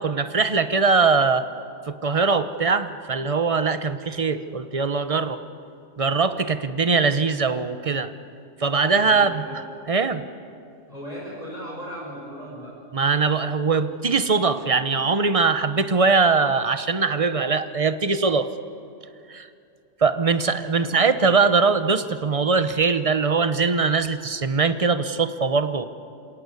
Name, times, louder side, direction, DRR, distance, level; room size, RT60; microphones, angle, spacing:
voice 1, 0.0-1.4 1.8-5.4 6.0-8.1 8.6-9.6 9.9-10.2 12.9-18.5 19.3-19.5 20.0-25.9, right 4 dB, 30° right, 11 dB, 0.9 m, -21 dB
voice 2, 9.0-9.5 10.9-12.8 20.7-21.3, equal, 30° left, -5 dB, 6.1 m, -37 dB
27.5 x 17.5 x 8.4 m, 2.6 s
omnidirectional pair, 1.3 m